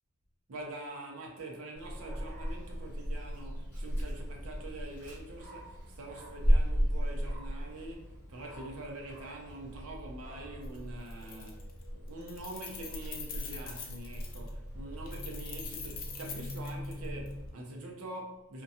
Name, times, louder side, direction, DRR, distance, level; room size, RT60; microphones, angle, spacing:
voice 1, 0.5-11.6 11.9-18.6, right 2 dB, 70° right, 0.6 m, -45 dB
Dog, 1.7-17.5, equal, 10° left, 1.3 m, -36 dB
Keys jangling, 10.6-10.8 11.1-11.8 12.1-14.5 15.1-17.3, left 6 dB, 40° left, 0.4 m, -44 dB
2.6 x 2.2 x 2.6 m
head